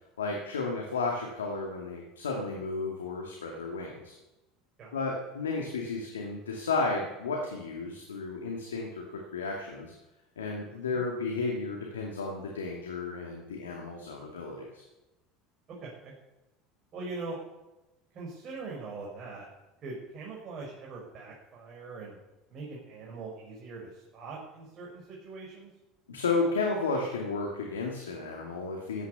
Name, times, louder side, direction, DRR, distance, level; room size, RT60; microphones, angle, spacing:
voice 1, 0.2-4.1 4.9-9.9 10.4-14.8 26.1-29.1, left 3 dB, 90° left, 1 dB, 2.4 m, -33 dB
voice 2, 10.7-11.0 15.8-16.1 16.9-17.4 18.1-19.5 19.8-22.2 22.5-25.7, right 3 dB, 45° right, -3 dB, 5.8 m, -42 dB
15.5 x 10.0 x 6.9 m, 1.0 s
hypercardioid pair, 80°, 0 cm